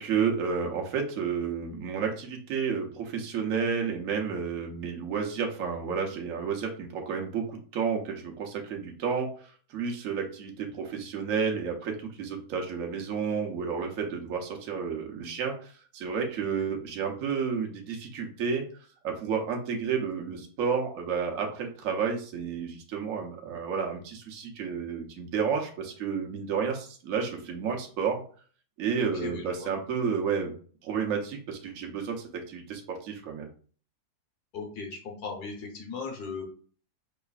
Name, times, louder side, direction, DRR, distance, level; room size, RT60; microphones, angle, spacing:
voice 1, 0.0-28.2 28.8-30.5 30.8-33.5, right 6 dB, 65° right, 1 dB, 1.1 m, -31 dB
voice 2, 29.2-29.7 34.5-36.4, left 4 dB, 85° left, 1 dB, 1.5 m, -37 dB
4.9 x 3.1 x 2.4 m, 0.43 s
omnidirectional pair, 1.6 m